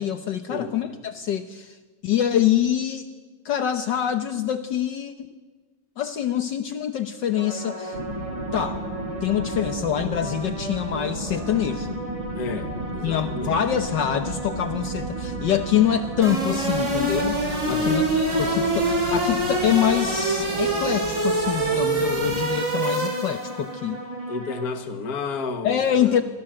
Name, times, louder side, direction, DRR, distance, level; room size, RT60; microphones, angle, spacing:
voice 1, 0.0-1.8 2.0-3.1 3.4-5.3 6.0-8.0 8.5-8.8 9.2-12.0 13.0-17.4 17.7-24.0 25.6-26.2, left 10 dB, 65° left, 9 dB, 1.6 m, -25 dB
sound 1, 7.3-24.6, right 1 dB, 15° right, 2.8 m, -35 dB
sound 2, 7.9-22.4, right 1 dB, 85° right, 5.4 m, -34 dB
voice 2, 12.3-13.6 17.6-18.0 24.3-26.2, left 4 dB, 50° left, 7 dB, 2.2 m, -32 dB
sound 3, 16.2-23.6, right 2 dB, 40° right, 5.7 m, -25 dB
28.0 x 24.0 x 7.8 m, 1.3 s
omnidirectional pair, 2.2 m